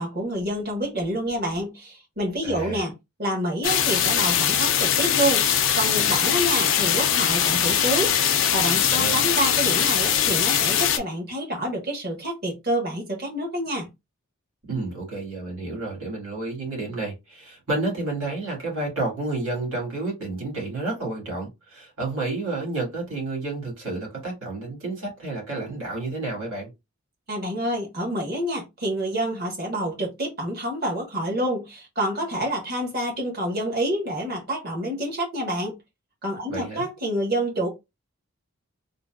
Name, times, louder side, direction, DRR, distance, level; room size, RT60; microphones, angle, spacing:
voice 1, 0.0-2.9 3.2-5.5 5.7-13.9 27.3-35.8 36.2-37.7, right 1 dB, 45° right, 1.1 m, -28 dB
voice 2, 2.4-2.9 8.9-9.2 14.7-26.7 36.5-36.9, right 2 dB, 90° right, 1.9 m, -30 dB
sound 1, 3.6-11.0, left 9 dB, 60° left, 0.5 m, -21 dB
3.8 x 2.1 x 2.2 m
head